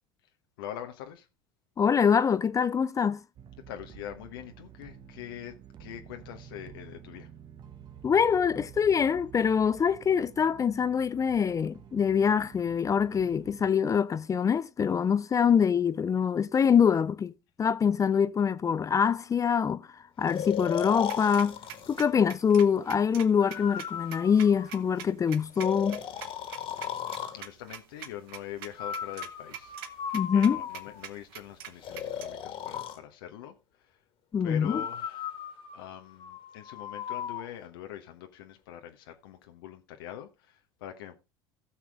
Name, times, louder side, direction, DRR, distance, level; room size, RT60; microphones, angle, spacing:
voice 1, 0.6-1.3 3.7-7.3 27.3-29.7 30.3-34.0 34.4-35.4 35.7-41.2, left 11 dB, 70° left, 1.1 m, -43 dB
voice 2, 1.8-3.2 8.0-17.3 17.6-21.6 21.9-26.0 30.1-30.6 34.3-34.8, left 7 dB, 25° left, 0.5 m, -24 dB
sound 1, 3.4-13.7, right 9 dB, 40° right, 1.2 m, -50 dB
Breathing, 20.3-22.1 23.4-25.1 25.6-27.4 28.8-31.0 31.8-33.0 34.6-37.5, left 9 dB, 50° left, 2.0 m, -37 dB
sound 2, 21.0-32.3, right 10 dB, 70° right, 1.2 m, -44 dB
16.0 x 6.1 x 3.5 m
hypercardioid pair, 75°, 12 cm